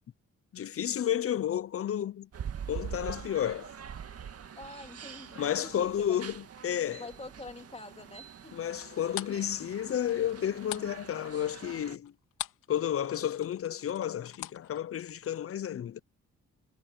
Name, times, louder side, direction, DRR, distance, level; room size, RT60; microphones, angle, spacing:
voice 1, 0.5-2.3 2.7-3.7 5.4-7.0 8.5-12.1 12.7-16.0, left 10 dB, 50° left, 0.8 m, -31 dB
sound 1, 2.3-12.0, right 8 dB, 50° right, 2.1 m, -44 dB
voice 2, 4.6-6.2 7.0-8.6, left 2 dB, 20° left, 3.7 m, -46 dB
sound 2, 8.7-12.7 13.0-15.4, left 13 dB, 85° left, 4.0 m, -42 dB
cardioid pair, 90°, 30 cm